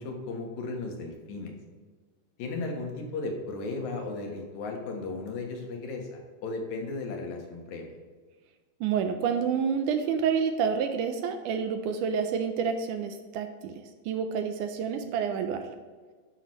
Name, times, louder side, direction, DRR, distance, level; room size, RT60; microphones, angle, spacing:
voice 1, 0.0-1.5 2.4-7.9, left 3 dB, 65° left, 2 dB, 2.4 m, -35 dB
voice 2, 8.8-13.8 14.1-15.6, right 6 dB, 80° right, 7 dB, 2.0 m, -28 dB
12.0 x 6.0 x 3.1 m, 1.5 s
omnidirectional pair, 3.9 m